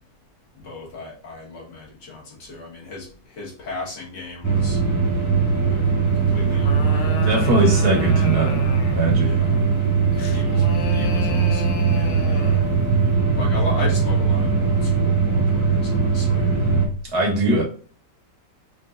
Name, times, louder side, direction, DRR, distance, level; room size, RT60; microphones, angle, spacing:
voice 1, 0.5-4.8 5.7-5.8 6.1-7.3 9.2-9.6 10.2-10.6 10.9-12.6 13.4-16.5 17.6-17.7, left 3 dB, 75° left, 2.4 m, -36 dB
sound 1, 4.4-16.9, right 5 dB, 10° left, 1.9 m, -20 dB
sound 2, 6.3-9.2 10.2-12.8, left 6 dB, 55° left, 0.8 m, -34 dB
voice 2, 7.2-8.7 8.9-9.3 17.1-17.6, right 2 dB, 65° right, 2.1 m, -20 dB
5.3 x 3.7 x 2.5 m
omnidirectional pair, 1.8 m